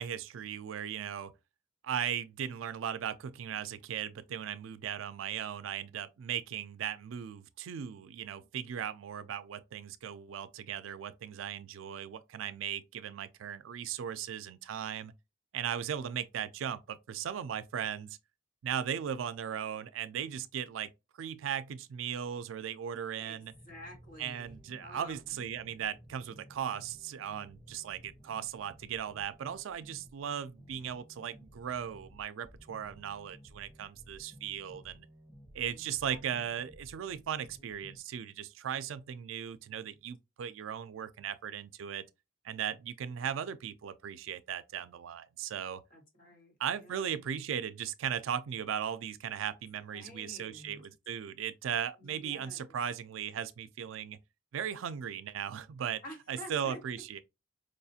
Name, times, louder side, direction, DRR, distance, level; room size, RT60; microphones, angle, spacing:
voice 1, 0.0-1.3 1.8-15.1 15.5-18.2 18.6-23.5 24.2-35.1 35.5-42.0 42.4-45.8 46.6-54.2 54.5-56.0 56.3-57.2, right 8 dB, 90° right, 0.4 m, -37 dB
voice 2, 23.2-25.2 35.7-36.2 45.9-46.5 46.8-47.1 49.9-50.8 52.0-52.8 56.0-56.8, left 1 dB, 45° left, 1.5 m, -50 dB
sound 1, 23.5-38.0, equal, 5° left, 0.8 m, -56 dB
4.9 x 2.4 x 2.7 m
head